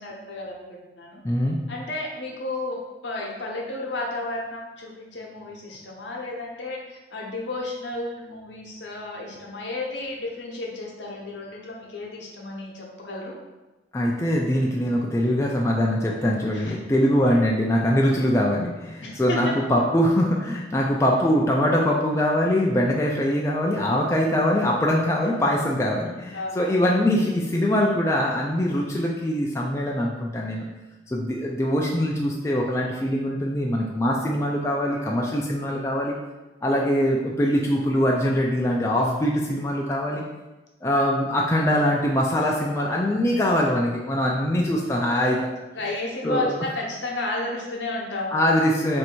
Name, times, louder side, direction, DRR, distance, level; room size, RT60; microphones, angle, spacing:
voice 1, 0.0-1.2 1.7-13.4 16.5-17.1 19.0-19.5 26.3-26.7 45.7-48.4, left 2 dB, 75° left, -2 dB, 0.8 m, -32 dB
voice 2, 1.2-1.6 13.9-30.7 31.1-36.1 36.6-40.2 40.8-45.4 46.2-46.5 48.3-49.0, equal, 15° left, -2 dB, 0.3 m, -23 dB
3.1 x 2.6 x 4.5 m, 1.1 s
head